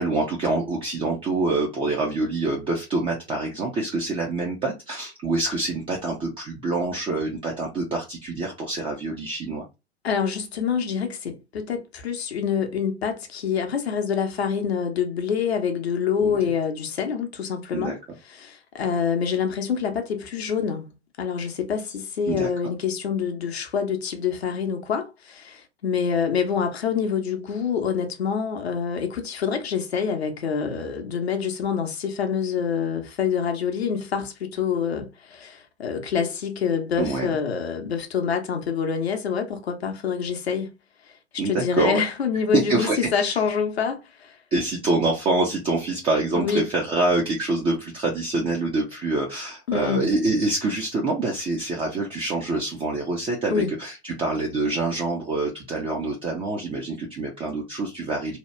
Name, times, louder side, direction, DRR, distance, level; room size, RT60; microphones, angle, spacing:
voice 1, 0.0-9.6 16.2-16.4 17.7-18.0 22.3-22.7 37.0-37.3 41.4-42.0 42.5-43.4 44.5-58.4, right 3 dB, 15° right, 0.5 m, -26 dB
voice 2, 10.0-18.0 18.3-40.7 41.4-44.4 46.4-46.7 49.7-50.1 53.5-53.7, left 7 dB, 70° left, 0.8 m, -26 dB
2.8 x 2.2 x 3.1 m
figure-of-eight pair, 100°, 33 cm